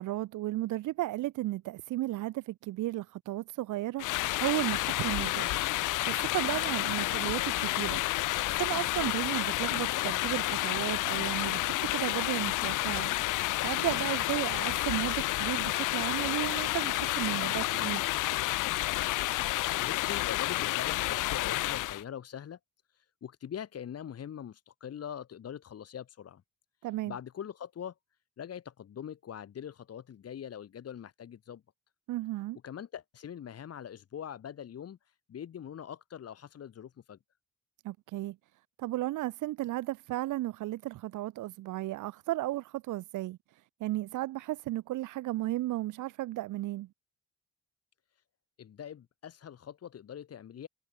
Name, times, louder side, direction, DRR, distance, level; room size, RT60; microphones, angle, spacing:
voice 1, 0.0-8.3 8.6-13.1 13.6-18.1 26.8-27.1 32.1-32.6 37.8-38.4 38.8-46.9, right 16 dB, 85° right, 1.1 m, -34 dB
sound 1, 4.0-22.0, left 18 dB, 90° left, 1.0 m, -30 dB
voice 2, 19.8-22.6 22.9-26.4 27.1-28.0 28.4-31.6 32.6-37.2 48.1-48.2 48.6-50.7, left 9 dB, 55° left, 1.9 m, -43 dB
cardioid pair, 90°, 30 cm